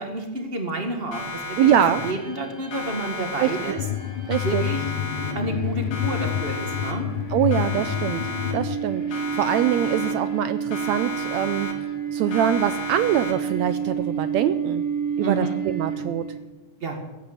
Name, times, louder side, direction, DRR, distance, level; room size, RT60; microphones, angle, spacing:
voice 1, 0.0-1.7 2.0-3.8 4.4-4.8 5.3-7.1 15.2-15.6 16.8-17.0, right 2 dB, 25° right, 4 dB, 1.2 m, -30 dB
Siren, 1.1-2.4 2.7-4.0 4.3-5.6 5.9-7.2 7.5-8.8 9.1-10.4 10.7-12.0 12.3-13.6, left 3 dB, 60° left, 3.7 m, -34 dB
voice 2, 1.6-2.0 3.4-3.5 4.3-4.6 7.3-8.2 8.5-11.7 12.1-14.8 15.2-16.3, right 10 dB, 80° right, 12 dB, 1.6 m, -23 dB
sound 1, 2.0-16.4, right 6 dB, 25° left, 2.6 m, -31 dB
sound 2, 3.8-8.8, left 12 dB, 80° left, 2.2 m, -28 dB
17.5 x 8.5 x 8.1 m, 1.1 s
omnidirectional pair, 3.7 m